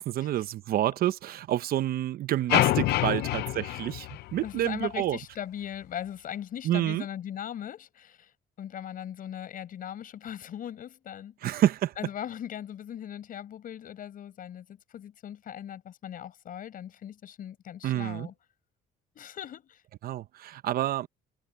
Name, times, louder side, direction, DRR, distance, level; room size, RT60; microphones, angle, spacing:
voice 1, 0.0-5.2 6.6-7.1 11.4-11.9 17.8-18.3 20.0-21.1, right 13 dB, 60° right, 0.8 m, -28 dB
sound 1, 2.5-4.8, left 16 dB, 75° left, 0.7 m, -27 dB
voice 2, 3.1-3.8 4.4-11.6 12.0-18.3 19.1-19.8, left 10 dB, 55° left, 5.9 m, -39 dB
cardioid pair, 110°, 17 cm